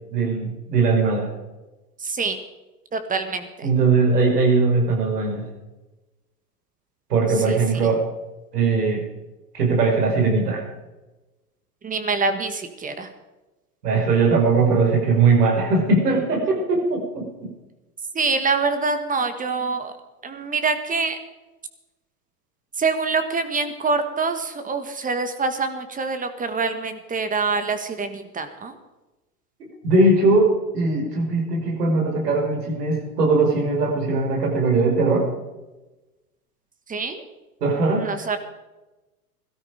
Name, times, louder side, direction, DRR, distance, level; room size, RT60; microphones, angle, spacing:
voice 1, 0.1-1.3 3.6-5.4 7.1-8.0 8.5-9.0 9.5-10.6 13.8-17.5 29.6-35.3 37.6-38.2, right 3 dB, 75° right, 0 dB, 5.7 m, -20 dB
voice 2, 2.0-2.4 2.9-3.7 7.4-7.9 11.8-13.1 18.1-19.9 20.2-21.2 22.8-28.8 36.9-37.2 38.0-38.4, right 4 dB, 15° right, 9 dB, 1.6 m, -25 dB
17.0 x 13.0 x 5.0 m, 1.1 s
hypercardioid pair, 105°, 47 cm